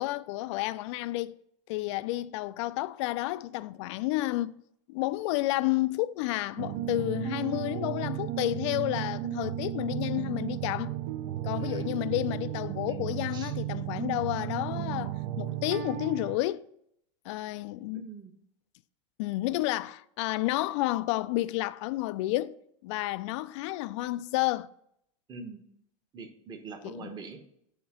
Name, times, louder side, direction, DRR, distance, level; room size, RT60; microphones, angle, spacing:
voice 1, 0.0-1.4 1.7-4.6 4.9-10.9 11.4-16.7 17.2-18.0 19.2-24.7 26.8-27.1, left 17 dB, 60° left, 0.4 m, -31 dB
sound 1, 6.6-16.4, right 13 dB, 55° right, 0.5 m, -34 dB
voice 2, 11.6-12.0 13.3-13.5 17.9-18.3 25.3-25.6 26.1-27.4, right 4 dB, 25° right, 1.1 m, -43 dB
7.9 x 2.9 x 6.1 m
supercardioid pair, 125°, 17 cm